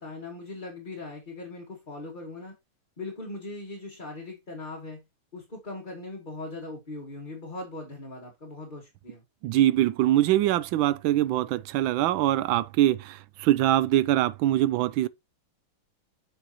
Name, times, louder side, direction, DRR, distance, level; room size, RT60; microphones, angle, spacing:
voice 1, 0.0-2.5 3.0-5.0 5.3-9.2, left 2 dB, 25° left, 1.7 m, -40 dB
voice 2, 9.4-15.1, right 13 dB, 75° right, 1.2 m, -23 dB
7.6 x 6.4 x 2.9 m
omnidirectional pair, 2.3 m